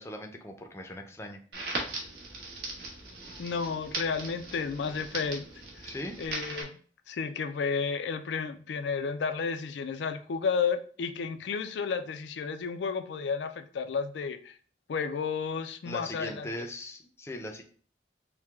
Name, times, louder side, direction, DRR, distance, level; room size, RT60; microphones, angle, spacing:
voice 1, 0.0-1.4 5.8-6.2 15.8-17.6, left 1 dB, 15° left, 4 dB, 0.5 m, -39 dB
Crackle, 1.5-6.6, right 2 dB, 70° right, 1.2 m, -39 dB
voice 2, 3.4-5.5 5.8-5.9 6.2-6.8 7.1-14.5 14.9-16.6, left 5 dB, 90° left, 9 dB, 0.4 m, -32 dB
4.5 x 2.1 x 3.5 m, 0.44 s
head